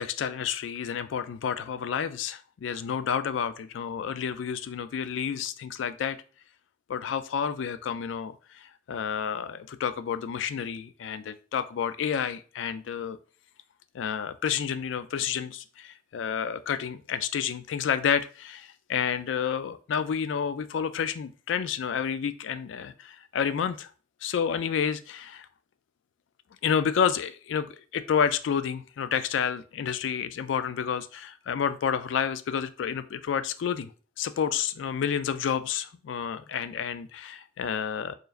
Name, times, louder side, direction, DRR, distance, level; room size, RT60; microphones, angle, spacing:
voice 1, 0.0-6.2 6.9-13.2 13.9-23.9 24.2-25.5 26.6-33.9 34.2-38.2, left 7 dB, 90° left, 12 dB, 0.3 m, -30 dB
4.6 x 3.1 x 2.4 m, 0.39 s
head